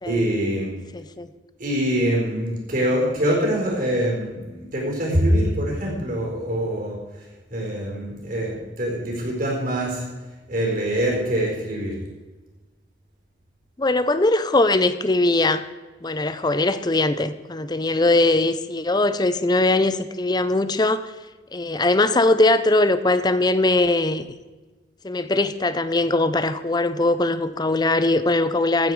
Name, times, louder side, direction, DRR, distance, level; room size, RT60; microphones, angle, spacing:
voice 1, 0.0-0.7 1.6-10.1 10.5-12.0, equal, 50° right, -1 dB, 4.3 m, -24 dB
voice 2, 0.9-1.3 13.8-15.6 16.0-21.1 21.5-24.3 25.0-28.9, left 2 dB, 25° left, 12 dB, 0.6 m, -20 dB
15.0 x 8.9 x 4.8 m, 1.2 s
head